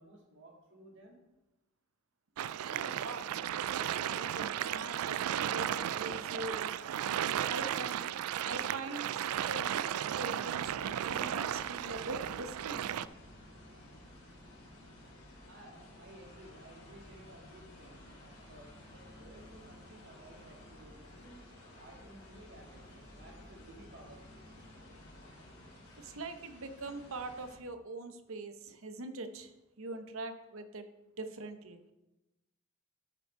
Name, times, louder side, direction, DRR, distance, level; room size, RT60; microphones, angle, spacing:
voice 1, 0.0-1.3 15.5-21.4 21.8-24.5, right 1 dB, 55° right, -1 dB, 2.4 m, -56 dB
sound 1, 2.4-13.1, right 10 dB, 90° right, 0.3 m, -35 dB
voice 2, 2.7-3.3 3.7-6.8 7.5-8.0 8.4-9.2 9.5-9.8 10.2-12.8 26.0-30.8 31.2-31.8, right 2 dB, 75° right, 8 dB, 0.8 m, -43 dB
sound 2, 10.4-27.6, left 1 dB, 85° left, 3.6 m, -54 dB
12.5 x 5.3 x 4.6 m, 1.0 s
head